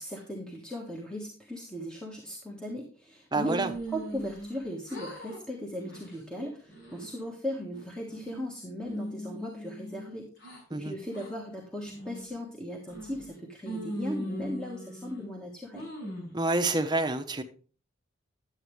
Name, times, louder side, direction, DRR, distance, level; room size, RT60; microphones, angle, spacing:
voice 1, 0.0-15.9, equal, 5° left, -1 dB, 1.2 m, -38 dB
voice 2, 3.3-3.7 10.7-10.9 16.3-17.4, right 2 dB, 20° right, 5 dB, 0.9 m, -27 dB
sound 1, 3.5-4.6 4.9-5.4 5.8-6.2 6.6-7.2 7.7-8.5 8.9-10.6 11.1-11.3 11.8-12.3 12.9-13.3 13.7-15.2 15.7-16.3, equal, 70° left, 6.0 m, -39 dB
11.0 x 8.1 x 3.2 m, 0.40 s
head